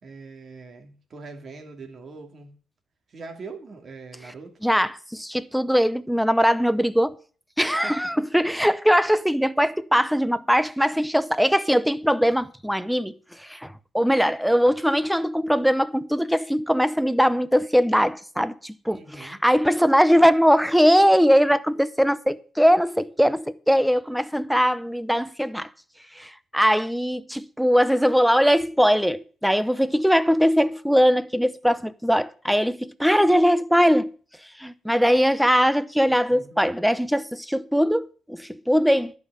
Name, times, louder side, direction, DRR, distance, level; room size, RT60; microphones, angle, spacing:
voice 1, 0.0-2.5 3.1-4.5 7.8-8.0 18.9-19.4 36.3-36.6, right 4 dB, 45° right, 2.8 m, -42 dB
voice 2, 4.6-7.2 7.6-25.7 26.1-34.1 34.6-39.1, equal, ahead, 0.7 m, -21 dB
11.0 x 5.6 x 8.7 m
cardioid pair, 90°, 0 cm